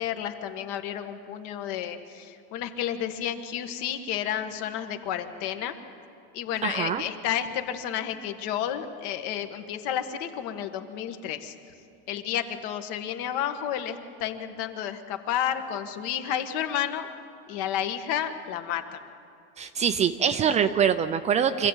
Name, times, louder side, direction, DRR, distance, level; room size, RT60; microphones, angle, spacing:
voice 1, 0.0-5.7 6.3-11.5 12.1-17.1 17.5-19.0, left 10 dB, 55° left, 7 dB, 1.7 m, -31 dB
voice 2, 6.6-7.0 19.6-21.7, right 7 dB, 20° right, 10 dB, 0.5 m, -24 dB
25.0 x 15.5 x 9.0 m, 2.5 s
supercardioid pair, 165°, 33 cm